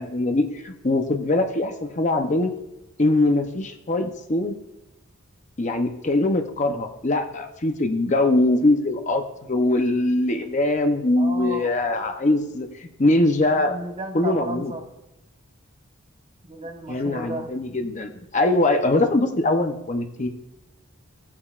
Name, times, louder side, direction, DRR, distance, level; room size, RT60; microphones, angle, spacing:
voice 1, 0.0-2.5 3.0-4.5 5.6-13.7 14.1-14.7 16.9-20.3, left 2 dB, 35° left, 5 dB, 0.7 m, -22 dB
voice 2, 11.2-11.7 13.5-14.9 16.4-17.6, right 1 dB, 30° right, 3 dB, 1.0 m, -33 dB
16.5 x 8.6 x 2.4 m, 0.90 s
head